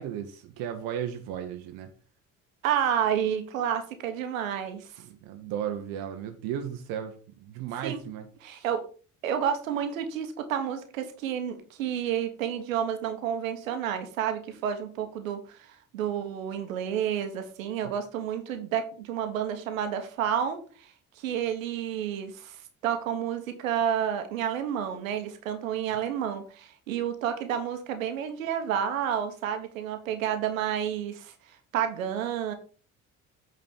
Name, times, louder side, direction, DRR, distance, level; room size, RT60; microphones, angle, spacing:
voice 1, 0.0-1.9 5.1-8.7, right 9 dB, 60° right, 6 dB, 1.1 m, -35 dB
voice 2, 2.6-4.9 7.8-8.0 8.4-8.8 9.2-32.5, right 9 dB, 75° right, 8 dB, 1.3 m, -30 dB
8.6 x 4.0 x 5.7 m, 0.38 s
figure-of-eight pair, 50°, 40 cm